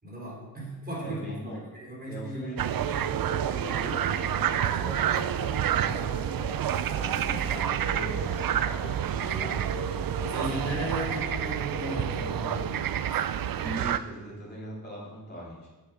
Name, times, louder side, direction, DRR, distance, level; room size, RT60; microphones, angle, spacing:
voice 1, 0.0-1.4 1.7-2.6 5.8-6.2 9.4-9.6 10.2-13.9, right 1 dB, 25° right, -4 dB, 3.6 m, -37 dB
voice 2, 1.0-1.6 2.1-5.2 6.9-8.9 13.6-15.7, right 1 dB, 25° left, -6 dB, 2.8 m, -40 dB
sound 1, 2.6-14.0, right 10 dB, 65° right, 0.5 m, -29 dB
Singing, 3.2-12.6, left 1 dB, 85° left, 2.8 m, -40 dB
8.4 x 6.7 x 6.1 m, 1.2 s
wide cardioid pair, 80°, 37 cm